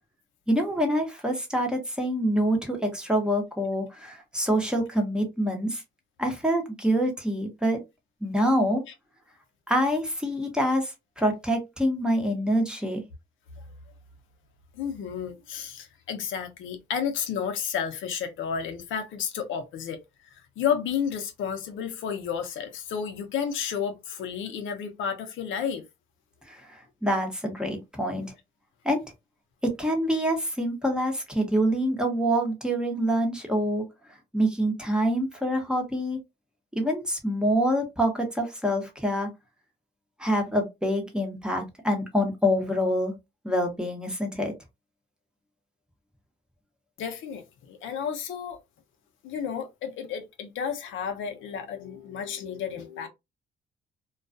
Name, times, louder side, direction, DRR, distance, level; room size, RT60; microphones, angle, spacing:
voice 1, 0.5-5.8 6.2-7.8 8.2-8.8 9.7-13.0 26.5-28.3 28.8-29.0 29.6-33.8 34.3-36.2 36.7-39.3 40.2-43.1 43.4-44.5, equal, 5° right, 0.9 m, -26 dB
voice 2, 14.7-20.0 20.3-25.8 47.0-48.6 49.2-53.1, left 7 dB, 80° left, 0.7 m, -32 dB
2.3 x 2.2 x 2.5 m
cardioid pair, 90°, 20 cm